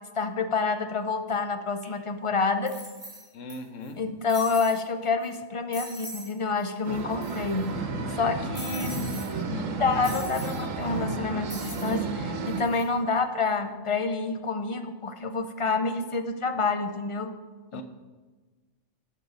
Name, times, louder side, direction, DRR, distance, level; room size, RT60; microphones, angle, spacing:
voice 1, 0.2-2.8 4.0-7.7 8.1-9.2 9.8-17.3 17.7-17.8, left 4 dB, 55° left, 8 dB, 0.3 m, -28 dB
sound 1, 1.8-1.9 2.7-3.5 3.8-3.9 4.3-4.8 5.2-5.4 5.7-6.3 6.6-6.7 6.9-7.6 8.5-9.3 10.0-10.6 11.5-12.0 12.5-12.8, equal, 25° right, 3.3 m, -41 dB
voice 2, 3.3-4.0 9.3-9.7 17.7-17.8, left 2 dB, 80° left, 7 dB, 1.2 m, -40 dB
sound 2, 6.8-12.6, right 3 dB, 85° right, 1.3 m, -32 dB
13.0 x 4.5 x 5.1 m, 1.3 s
omnidirectional pair, 1.3 m